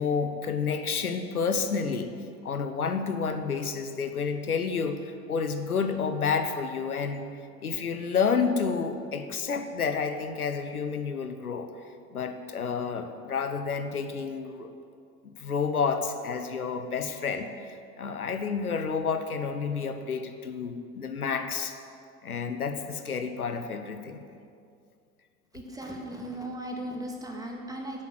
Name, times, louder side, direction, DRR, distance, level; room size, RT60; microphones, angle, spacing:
voice 1, 0.0-2.1 2.4-7.3 7.6-11.7 12.1-14.7 15.2-21.8 22.2-24.2, left 5 dB, 80° left, 9 dB, 1.0 m, -30 dB
voice 2, 25.5-28.0, right 1 dB, 10° right, 0 dB, 2.3 m, -37 dB
11.0 x 8.7 x 7.9 m, 2.3 s
figure-of-eight pair, 70°, 43 cm